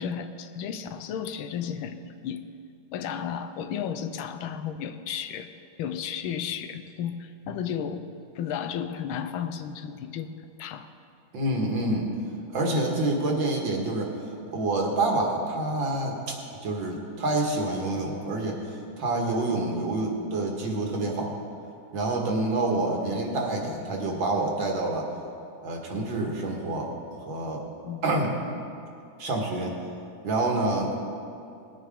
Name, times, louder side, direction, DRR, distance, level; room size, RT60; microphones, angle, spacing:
voice 1, 0.0-2.4 2.9-5.5 5.8-8.1 8.3-10.9 27.8-28.0, left 8 dB, 90° left, 9 dB, 1.5 m, -33 dB
voice 2, 11.3-12.1 12.5-14.1 14.5-16.4 16.6-21.3 21.9-25.1 25.6-27.6 28.0-28.3 29.2-29.8 30.2-30.9, right 2 dB, 70° right, 0 dB, 2.4 m, -27 dB
19.5 x 8.9 x 3.7 m, 2.5 s
omnidirectional pair, 2.2 m